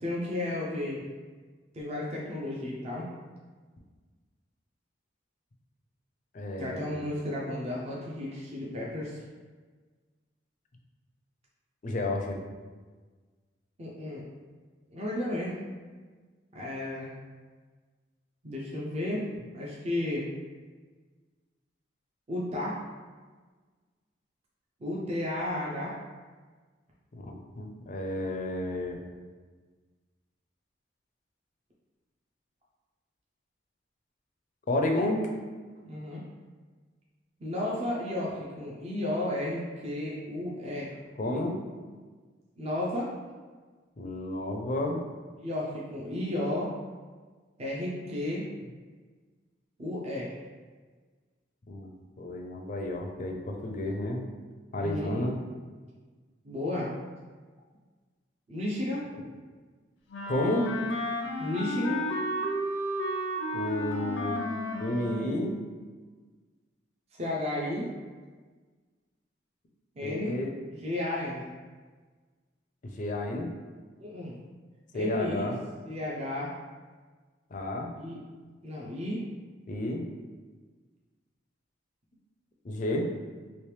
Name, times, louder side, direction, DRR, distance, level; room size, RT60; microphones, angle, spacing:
voice 1, 0.0-1.0 1.7-3.1 6.6-9.2 13.8-14.2 14.9-15.6 16.5-17.1 18.4-20.3 22.3-22.8 24.8-25.9 35.9-36.2 37.4-40.9 42.6-43.1 45.4-46.7 47.6-48.4 49.8-50.3 54.8-55.1 56.4-56.9 58.5-59.1 61.4-62.1 67.2-67.9 70.0-70.4 70.7-71.5 74.0-74.3 74.9-75.5 75.9-76.5 78.0-78.2 78.6-79.3, left 1 dB, 35° right, -4 dB, 0.5 m, -33 dB
voice 2, 6.3-7.0 11.8-12.4 27.2-29.0 34.7-35.3 41.2-41.6 44.0-45.0 51.7-51.9 52.2-54.2 54.7-55.4 60.3-60.7 63.5-64.4 64.8-65.5 70.0-70.5 72.8-73.5 74.9-75.6 77.5-77.9 79.7-80.0 82.6-83.1, left 1 dB, 40° left, 2 dB, 0.4 m, -31 dB
Wind instrument woodwind instrument, 60.1-65.4, equal, 90° left, 0.6 m, -32 dB
3.2 x 2.9 x 3.2 m, 1.4 s
head